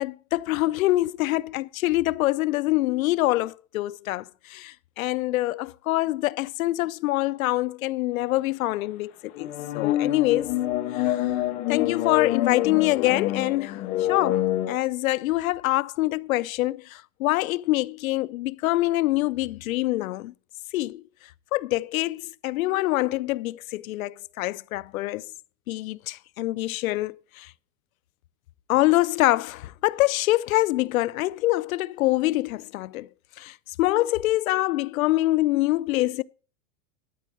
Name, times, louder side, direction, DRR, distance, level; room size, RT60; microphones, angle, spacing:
voice 1, 0.0-10.5 10.9-11.3 11.7-20.3 20.7-21.0 21.5-25.3 25.7-27.5 28.7-33.1 33.4-36.2, left 17 dB, 80° left, 0.6 m, -25 dB
sound 1, 9.3-14.8, left 13 dB, 20° left, 0.6 m, -26 dB
13.0 x 4.5 x 7.6 m
supercardioid pair, 175°, 40 cm